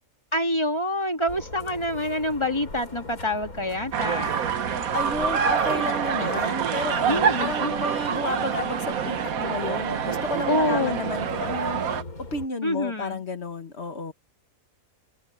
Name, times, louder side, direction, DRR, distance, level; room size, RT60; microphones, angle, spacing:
voice 1, 0.3-4.3 7.1-7.8 10.5-11.0 12.6-13.2, left 1 dB, 20° left, 2.0 m, -26 dB
sound 1, 1.3-12.5, left 2 dB, 90° left, 5.3 m, -42 dB
sound 2, 3.9-12.0, right 7 dB, 80° right, 1.5 m, -26 dB
voice 2, 4.9-11.8 12.2-14.1, left 3 dB, 50° left, 1.6 m, -32 dB
omnidirectional pair, 1.5 m